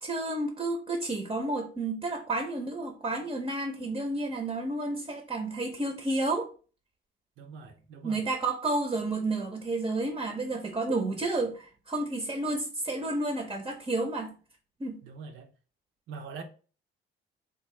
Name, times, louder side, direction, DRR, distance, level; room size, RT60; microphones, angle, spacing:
voice 1, 0.0-6.5 8.0-14.3 14.8-15.0, right 2 dB, 25° right, 0.6 m, -31 dB
voice 2, 7.4-8.2 15.0-15.5 16.1-16.4, right 5 dB, 80° right, 0.7 m, -43 dB
3.5 x 2.3 x 3.1 m
cardioid pair, 90°, 20 cm